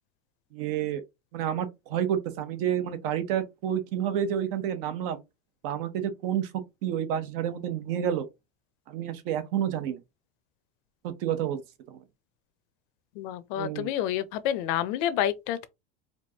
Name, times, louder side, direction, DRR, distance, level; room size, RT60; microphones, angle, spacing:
voice 1, 0.5-1.0 1.3-5.2 5.6-6.5 6.8-8.3 8.9-10.0 11.0-11.6 11.9-12.0 13.5-13.9, right 10 dB, 60° right, 0.9 m, -29 dB
voice 2, 13.2-15.7, left 11 dB, 60° left, 0.6 m, -29 dB
4.4 x 2.5 x 2.8 m
supercardioid pair, 150°, 30 cm